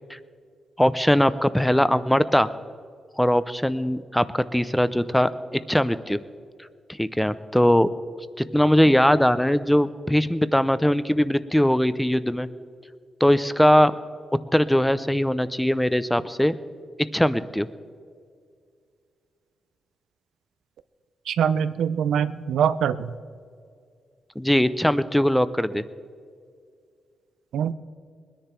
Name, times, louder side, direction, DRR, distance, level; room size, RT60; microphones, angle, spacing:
voice 1, 0.8-2.5 3.2-6.2 7.0-7.9 8.5-12.5 13.2-13.9 14.5-16.6 17.1-17.7 24.4-25.8, equal, 5° left, 14 dB, 0.6 m, -20 dB
voice 2, 21.3-23.1 27.5-27.7, right 8 dB, 90° right, 14 dB, 0.5 m, -23 dB
21.0 x 10.0 x 4.4 m, 2.2 s
cardioid pair, 85°, 0 cm